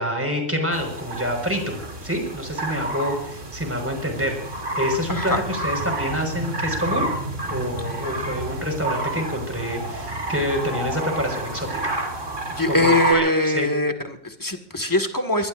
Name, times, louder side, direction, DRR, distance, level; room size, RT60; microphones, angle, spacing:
voice 1, 0.0-1.8 2.0-4.4 4.7-7.1 7.5-11.9 12.7-13.7, equal, 10° right, 3 dB, 5.2 m, -27 dB
sound 1, 0.7-13.1, right 2 dB, 75° right, 3.6 m, -30 dB
voice 2, 5.1-5.4 12.5-15.5, left 2 dB, 15° left, 5 dB, 1.9 m, -22 dB
23.0 x 21.5 x 2.6 m, 0.74 s
omnidirectional pair, 1.3 m